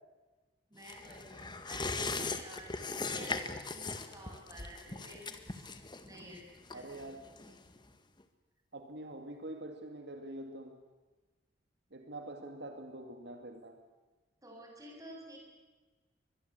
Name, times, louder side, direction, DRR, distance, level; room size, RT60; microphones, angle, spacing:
voice 1, 0.7-5.7 6.0-6.4 6.7-6.8 7.4-7.5 14.4-15.4, equal, 20° right, 1 dB, 7.6 m, -51 dB
sound 1, 0.8-7.9 8.2-8.3, left 3 dB, 25° left, 1.8 m, -40 dB
voice 2, 6.7-7.2 8.7-10.8 11.9-13.8, right 1 dB, 70° right, 5 dB, 2.3 m, -45 dB
24.0 x 21.5 x 8.2 m, 1.3 s
head